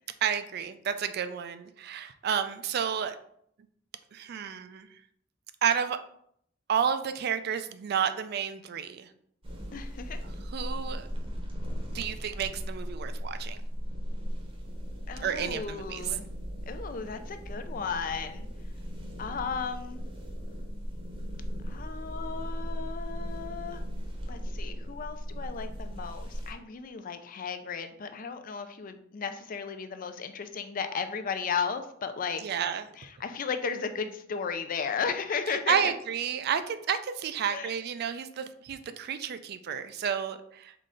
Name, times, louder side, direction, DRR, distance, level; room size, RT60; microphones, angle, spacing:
voice 1, 0.2-3.2 4.1-5.0 5.6-6.0 6.7-9.1 10.2-11.1 11.9-13.6 15.2-16.2 32.4-32.9 35.5-40.8, right 8 dB, 55° right, 10 dB, 0.3 m, -31 dB
sound 1, 9.4-26.5, equal, 30° right, 0.8 m, -37 dB
voice 2, 9.7-10.2 15.1-16.2 16.7-18.5 19.2-20.0 21.7-23.8 24.3-32.4 33.0-35.8 37.5-37.7, left 6 dB, 45° left, 9 dB, 0.4 m, -35 dB
3.8 x 3.2 x 3.7 m, 0.68 s
head